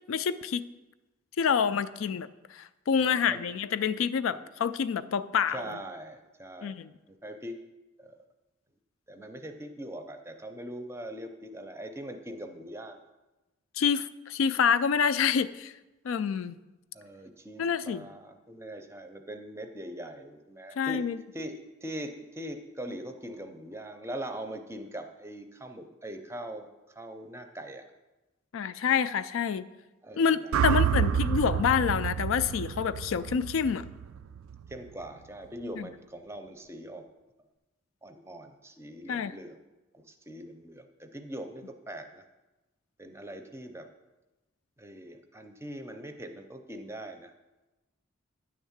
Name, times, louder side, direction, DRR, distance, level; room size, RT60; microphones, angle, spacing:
voice 1, 0.1-0.6 1.4-5.6 6.6-6.9 13.8-15.7 16.0-16.6 17.6-18.1 20.8-21.2 28.5-29.7 30.2-33.8 35.8-35.9 39.1-39.3, left 6 dB, 80° left, 14 dB, 0.4 m, -27 dB
voice 2, 3.0-3.4 4.3-4.5 5.5-6.8 7.1-7.6 8.0-8.2 9.1-13.0 16.9-21.0 21.3-21.5 21.8-27.8 30.0-30.8 34.7-37.0 38.0-39.6 39.9-42.2 43.0-43.9 44.8-47.3, right 1 dB, 15° right, 6 dB, 0.5 m, -42 dB
sound 1, 30.5-34.7, right 8 dB, 85° right, 0.3 m, -29 dB
9.8 x 3.6 x 7.2 m, 1.1 s
head